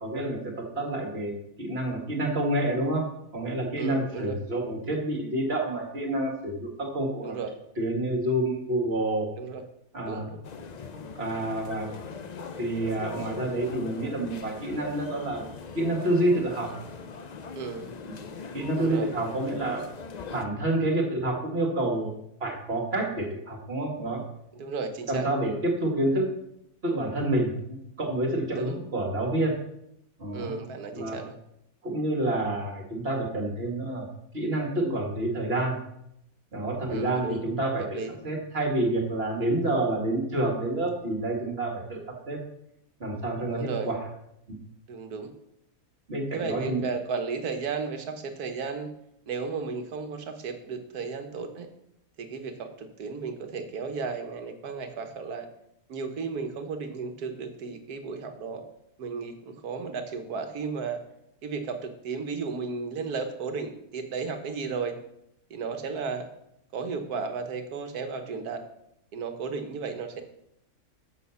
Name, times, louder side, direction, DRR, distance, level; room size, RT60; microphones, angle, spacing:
voice 1, 0.0-3.0 3.3-7.4 7.8-9.3 9.9-10.3 11.2-11.9 12.6-15.4 15.7-16.7 18.1-18.2 18.5-19.9 20.3-22.1 22.4-24.2 25.1-26.3 26.8-27.5 28.0-29.6 30.2-30.5 30.9-31.2 31.8-34.1 34.3-35.8 36.5-42.0 42.3-42.4 43.0-44.0 46.1-46.8, right 1 dB, 40° right, 1 dB, 2.0 m, -28 dB
voice 2, 3.8-4.4 7.2-7.5 9.3-9.6 10.0-10.4 17.5-17.9 18.8-19.1 24.5-25.3 28.5-28.8 30.3-31.3 36.9-37.4 37.8-38.1 43.5-43.9 44.9-45.3 46.3-48.9 49.3-51.7 52.2-55.5 55.9-58.6 59.0-61.0 61.4-65.0 65.5-66.3 66.7-68.6 69.1-70.2, right 5 dB, 85° right, 6 dB, 1.6 m, -34 dB
sound 1, 10.4-20.5, left 5 dB, 70° left, 0.4 m, -41 dB
6.6 x 6.4 x 6.9 m, 0.77 s
omnidirectional pair, 1.6 m